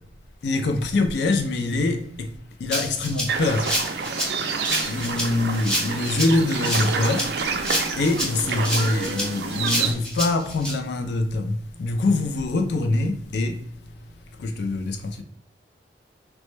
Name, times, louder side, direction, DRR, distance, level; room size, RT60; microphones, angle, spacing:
voice 1, 0.4-2.3 2.6-3.7 4.9-7.3 8.0-13.6 14.4-15.2, left 2 dB, 75° left, 0.4 m, -24 dB
Rattle (instrument), 2.7-10.7, equal, 5° left, 0.6 m, -28 dB
sound 1, 3.3-9.9, right 5 dB, 75° right, 0.4 m, -28 dB
3.0 x 2.1 x 3.0 m
head